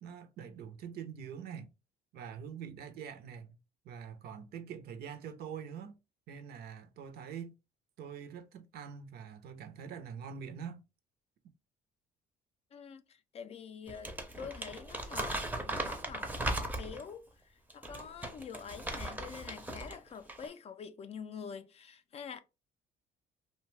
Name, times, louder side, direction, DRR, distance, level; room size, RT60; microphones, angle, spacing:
voice 1, 0.0-1.7 2.1-3.6 3.8-6.0 6.3-7.5 8.0-10.8, right 7 dB, 65° right, 0.6 m, -44 dB
voice 2, 12.7-17.3 17.7-22.4, left 6 dB, 40° left, 0.3 m, -46 dB
Crumpling crinkling, 13.9-17.1 17.7-20.0 20.3-20.5, right 1 dB, 10° right, 0.5 m, -38 dB
2.7 x 2.2 x 3.1 m
cardioid pair, 110°, 17 cm